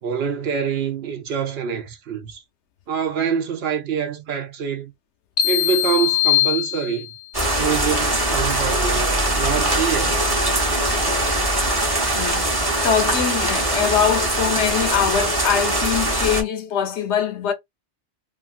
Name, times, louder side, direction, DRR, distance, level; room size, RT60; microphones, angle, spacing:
voice 1, 0.0-2.4 2.9-4.9 5.4-7.1 7.6-10.2, right 7 dB, 65° right, 0.9 m, -25 dB
sound 1, 5.4-7.3, left 14 dB, 55° left, 0.5 m, -21 dB
sound 2, 7.3-16.4, right 1 dB, 25° right, 0.8 m, -21 dB
voice 2, 12.1-12.5 12.8-17.5, left 8 dB, 80° left, 0.9 m, -22 dB
2.6 x 2.6 x 2.4 m
omnidirectional pair, 1.1 m